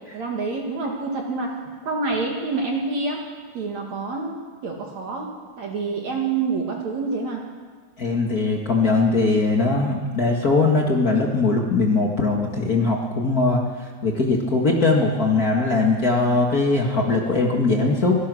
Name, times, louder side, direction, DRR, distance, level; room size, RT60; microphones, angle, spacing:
voice 1, 0.1-1.5 1.8-3.2 3.5-5.3 5.6-7.4, right 4 dB, 50° right, 0 dB, 2.9 m, -27 dB
voice 2, 8.0-13.6 14.0-18.2, left 3 dB, 55° left, 0 dB, 1.0 m, -20 dB
24.5 x 17.5 x 6.3 m, 1.5 s
omnidirectional pair, 4.8 m